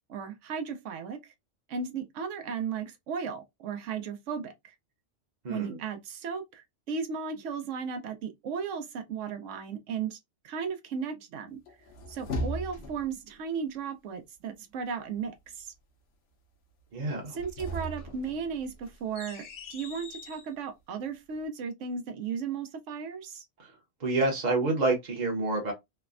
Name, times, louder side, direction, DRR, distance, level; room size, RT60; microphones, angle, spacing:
voice 1, 0.1-1.3 1.7-4.7 5.5-10.2 10.4-11.6 12.1-15.7 17.3-23.4, right 6 dB, 90° right, 0.9 m, -35 dB
voice 2, 5.4-5.8 16.9-17.4 23.6-23.7 24.0-25.7, right 2 dB, 45° right, 0.8 m, -28 dB
sound 1, 11.7-13.2 17.2-20.5, equal, 65° left, 0.9 m, -38 dB
3.2 x 2.0 x 2.4 m
omnidirectional pair, 1.2 m